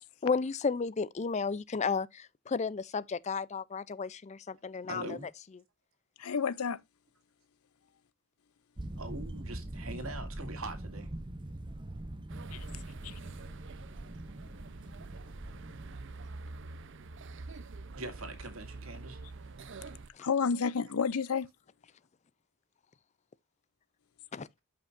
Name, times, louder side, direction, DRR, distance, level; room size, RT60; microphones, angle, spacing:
voice 1, 0.2-5.2 20.1-20.2 24.3-24.5, left 5 dB, 30° left, 0.4 m, -33 dB
voice 2, 4.9-5.3 9.0-11.1 12.7-12.8 17.9-19.2, right 2 dB, 75° right, 2.2 m, -42 dB
voice 3, 6.2-6.8 12.5-12.7 13.0-13.2 20.2-21.5, left 6 dB, 90° left, 0.6 m, -30 dB
sound 1, 8.8-16.0, right 1 dB, 20° right, 0.7 m, -43 dB
sound 2, 12.3-20.1, right 3 dB, 60° right, 0.7 m, -46 dB
11.5 x 5.7 x 2.5 m
head